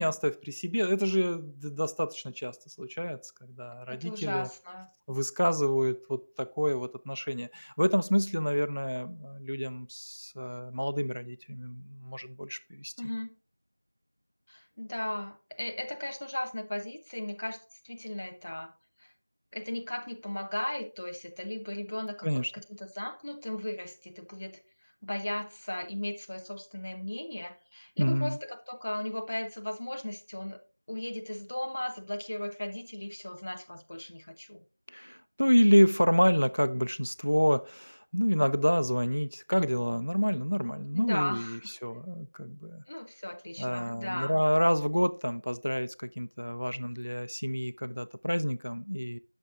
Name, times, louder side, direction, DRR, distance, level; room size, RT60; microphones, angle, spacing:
voice 1, 0.0-3.2 3.5-4.5 5.1-12.9 22.2-22.5 28.0-28.4 34.9-42.8 43.6-49.2, equal, 75° left, 0.6 m, -28 dB
voice 2, 3.9-4.9 13.0-13.3 14.5-18.7 19.0-19.1 19.5-30.6 30.9-34.6 40.9-41.7 42.9-44.4, left 1 dB, 15° left, 0.4 m, -37 dB
9.3 x 6.4 x 2.4 m
figure-of-eight pair, 180°, 0 cm